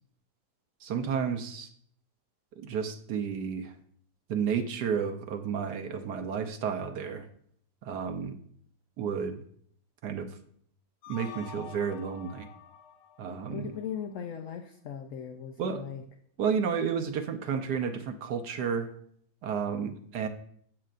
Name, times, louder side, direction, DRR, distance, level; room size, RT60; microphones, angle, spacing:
voice 1, 0.8-1.7 2.6-3.8 4.3-7.3 7.8-8.4 9.0-9.4 10.0-10.4 11.1-12.5 13.2-13.7 15.6-15.8 16.4-18.9 19.4-20.3, right 6 dB, 70° right, 6 dB, 1.2 m, -31 dB
sound 1, 11.0-14.2, left 8 dB, 90° left, 1.6 m, -47 dB
voice 2, 13.5-16.0, left 8 dB, 65° left, 5 dB, 0.8 m, -38 dB
12.0 x 7.9 x 2.5 m, 0.64 s
omnidirectional pair, 1.9 m